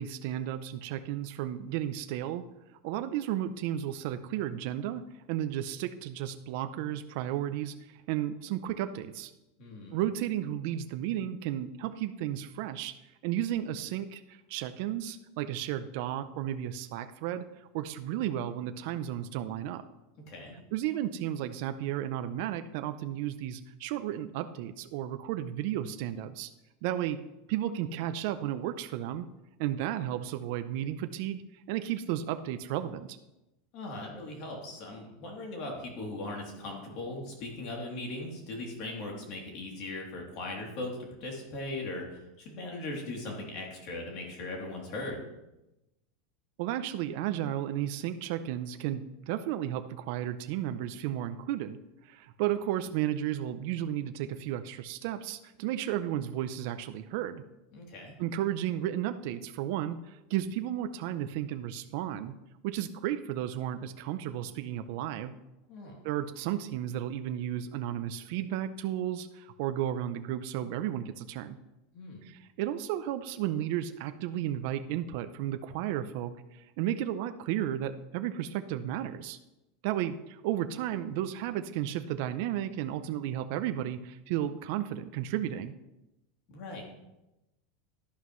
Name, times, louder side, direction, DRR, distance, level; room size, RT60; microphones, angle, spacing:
voice 1, 0.0-2.4 2.8-5.0 5.3-9.3 9.9-12.9 13.2-19.8 20.7-26.5 26.8-27.2 27.5-29.3 29.6-33.2 46.6-51.8 52.0-57.4 58.2-62.3 62.6-65.4 66.0-71.6 72.2-79.4 79.8-85.7, right 11 dB, 50° right, 10 dB, 0.5 m, -33 dB
voice 2, 9.6-10.0 20.3-20.5 33.7-45.2 57.7-58.1 65.7-66.0 71.9-72.2 86.5-86.8, left 2 dB, 45° left, -1 dB, 2.9 m, -39 dB
11.5 x 11.0 x 3.1 m, 0.95 s
supercardioid pair, 165°, 0 cm